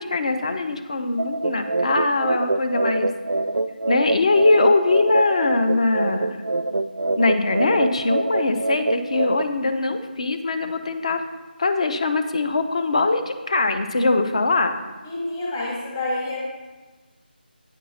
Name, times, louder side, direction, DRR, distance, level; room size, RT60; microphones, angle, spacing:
voice 1, 0.0-3.1 3.9-6.4 7.2-11.2 11.6-14.8, left 3 dB, 40° left, 8 dB, 0.6 m, -22 dB
sound 1, 1.2-9.4, right 2 dB, 75° right, 0.4 m, -25 dB
voice 2, 15.0-16.4, left 2 dB, 20° left, -5 dB, 1.2 m, -28 dB
9.3 x 5.3 x 4.2 m, 1.3 s
figure-of-eight pair, 170°, 5 cm